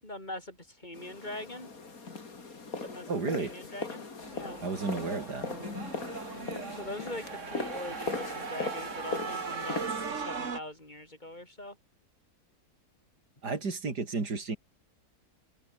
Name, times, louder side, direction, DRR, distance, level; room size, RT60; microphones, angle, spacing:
voice 1, 0.0-1.7 2.8-4.1 4.3-4.6 6.3-11.8, left 1 dB, 25° left, 6.2 m, -42 dB
sound 1, 0.9-10.1, left 4 dB, 60° left, 3.3 m, -39 dB
voice 2, 3.1-3.6 4.6-5.5 13.4-14.6, right 4 dB, 90° right, 3.9 m, -32 dB
sound 2, 4.2-10.6, right 5 dB, 50° right, 2.1 m, -39 dB
open air
omnidirectional pair, 1.7 m